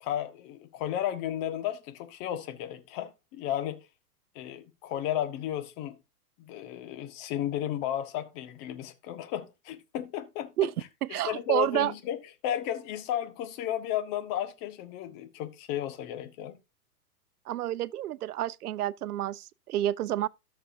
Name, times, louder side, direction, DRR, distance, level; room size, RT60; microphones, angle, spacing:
voice 1, 0.0-3.8 4.3-6.0 6.4-10.7 11.1-16.6, left 11 dB, 40° left, 1.5 m, -34 dB
voice 2, 11.0-11.9 17.5-20.3, right 13 dB, 75° right, 0.6 m, -29 dB
13.5 x 6.9 x 2.7 m
hypercardioid pair, 125°, 45 cm